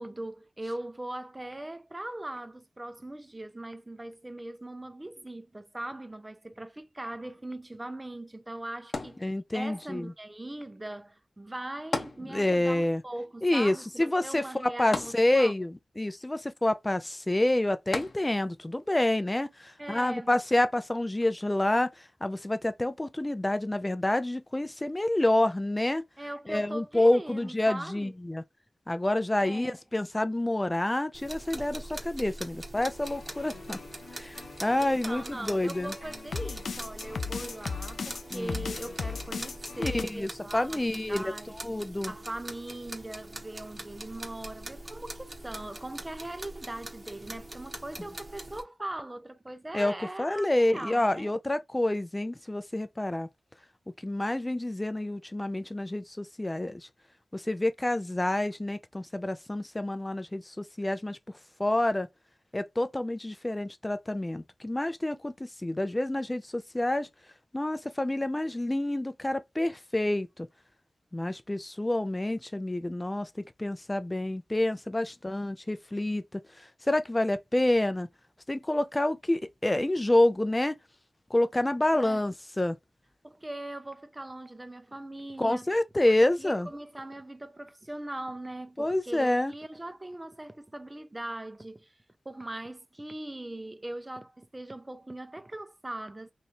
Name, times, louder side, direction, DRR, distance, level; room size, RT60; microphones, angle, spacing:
voice 1, 0.0-9.2 9.5-15.5 19.8-20.3 26.2-28.1 29.4-29.8 34.8-40.8 41.1-41.5 42.1-51.3 81.9-82.2 83.2-85.7 86.1-92.0 92.2-96.3, right 1 dB, 20° right, 0.6 m, -40 dB
sound 1, 8.9-9.8 11.9-12.8 13.1-13.2 14.9-15.8 17.9-18.6 19.3-19.4, left 3 dB, 65° left, 0.8 m, -35 dB
voice 2, 9.2-10.1 12.2-13.0 13.4-21.9 22.2-26.1 26.5-28.4 28.9-33.8 34.1-35.9 38.3-38.6 39.8-41.3 41.6-42.1 49.7-53.3 54.0-56.8 57.3-61.2 61.6-62.1 62.5-67.1 67.5-70.5 71.1-73.3 73.6-78.1 78.5-80.8 81.3-82.8 85.4-86.7 88.8-89.5, left 1 dB, 20° left, 0.5 m, -28 dB
sound 2, 31.1-48.6, right 1 dB, 40° right, 1.0 m, -43 dB
sound 3, 32.7-40.0, left 5 dB, 85° left, 0.4 m, -38 dB
3.2 x 2.7 x 4.2 m
wide cardioid pair, 65°, 0 cm